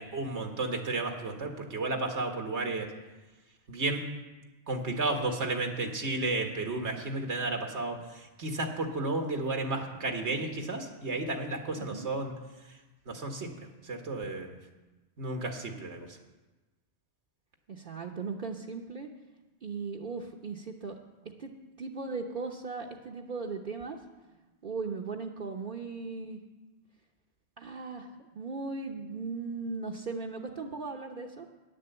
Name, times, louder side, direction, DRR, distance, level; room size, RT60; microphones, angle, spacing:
voice 1, 0.0-2.9 3.7-4.1 4.7-12.3 13.1-14.6 15.2-16.1, right 2 dB, 80° right, 4 dB, 1.8 m, -33 dB
voice 2, 11.7-12.1 17.7-19.1 19.6-21.0 21.2-21.5 21.8-24.0 24.6-26.4 27.6-28.1 28.3-31.5, right 4 dB, 50° right, -1 dB, 1.0 m, -37 dB
11.5 x 10.0 x 7.9 m, 1.2 s
omnidirectional pair, 1.1 m